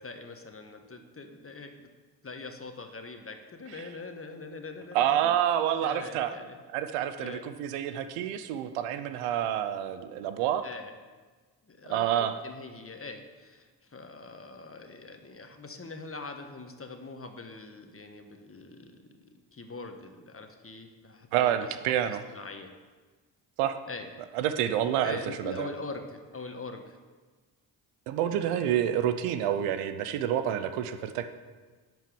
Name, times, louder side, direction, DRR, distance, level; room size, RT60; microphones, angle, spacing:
voice 1, 0.0-1.9 2.2-5.3 5.8-6.6 7.2-7.5 10.6-10.9 11.6-22.7 23.9-24.1 25.0-27.0 28.3-28.6, left 3 dB, 25° left, 5 dB, 1.4 m, -43 dB
voice 2, 4.9-6.3 6.7-10.7 11.9-12.4 21.3-22.2 23.6-23.7 24.3-25.7 28.1-31.3, right 10 dB, 85° right, 10 dB, 0.7 m, -28 dB
11.0 x 4.6 x 7.0 m, 1.4 s
hypercardioid pair, 50°, 50 cm